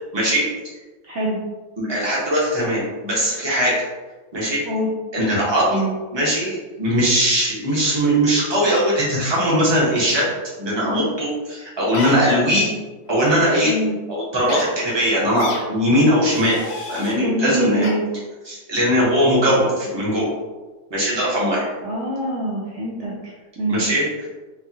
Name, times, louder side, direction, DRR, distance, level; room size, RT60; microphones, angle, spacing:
voice 1, 0.1-0.4 1.8-3.7 4.3-4.6 5.1-10.3 10.6-12.7 13.1-13.7 14.1-16.6 16.9-17.9 18.4-20.3 20.9-21.7 23.7-24.3, equal, 20° right, -6 dB, 0.7 m, -20 dB
voice 2, 1.0-1.4 4.6-4.9 13.6-14.0 17.2-18.1 21.8-23.8, right 1 dB, 85° right, -4 dB, 0.6 m, -25 dB
sound 1, 11.9-12.2 13.1-13.3 14.5-14.6 15.3-15.6 16.3-17.1 17.8-17.9, left 4 dB, 85° left, 1.4 m, -31 dB
4.4 x 2.4 x 2.8 m, 1.2 s
omnidirectional pair, 2.0 m